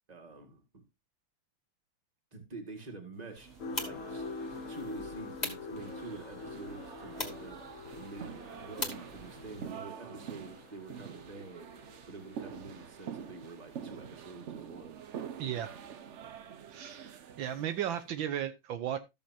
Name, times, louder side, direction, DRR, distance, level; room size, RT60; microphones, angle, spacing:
voice 1, 0.1-0.8 2.3-3.6 3.8-4.2 4.7-15.0, right 3 dB, 20° right, 2.0 m, -47 dB
sound 1, 3.4-9.7, left 2 dB, 20° left, 2.0 m, -43 dB
sound 2, 3.4-18.1, right 8 dB, 60° right, 0.7 m, -47 dB
sound 3, 3.6-13.6 13.9-14.2 14.7-14.8, left 3 dB, 50° left, 1.1 m, -46 dB
voice 2, 15.4-15.7 16.7-19.0, right 10 dB, 75° right, 1.6 m, -35 dB
14.0 x 7.0 x 2.8 m
omnidirectional pair, 2.2 m